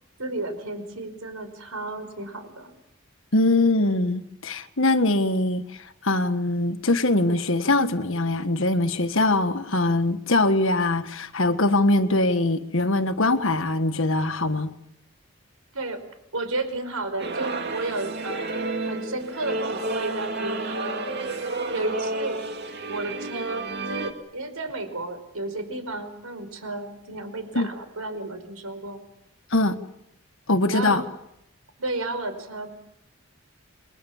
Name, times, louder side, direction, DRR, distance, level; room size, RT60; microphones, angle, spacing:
voice 1, 0.2-2.7 15.7-16.0 16.3-18.6 18.9-21.1 21.7-22.4 22.9-29.0 30.7-31.0 31.8-32.7, right 2 dB, 80° right, 5.2 m, -32 dB
voice 2, 3.3-14.7 27.6-27.7 29.5-29.8 30.5-31.0, left 2 dB, 65° left, 1.6 m, -22 dB
sound 1, 17.2-24.1, right 2 dB, 50° right, 2.4 m, -31 dB
29.0 x 22.0 x 7.3 m
head